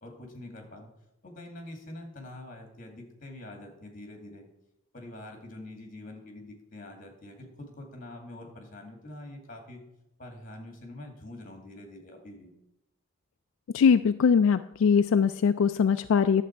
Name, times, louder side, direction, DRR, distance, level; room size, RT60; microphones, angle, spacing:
voice 1, 0.0-0.9 1.2-4.5 4.9-9.8 10.2-12.5, left 1 dB, 40° left, 2 dB, 2.1 m, -45 dB
voice 2, 13.7-16.4, left 6 dB, 75° left, 10 dB, 0.3 m, -22 dB
11.0 x 7.4 x 4.6 m, 0.88 s
head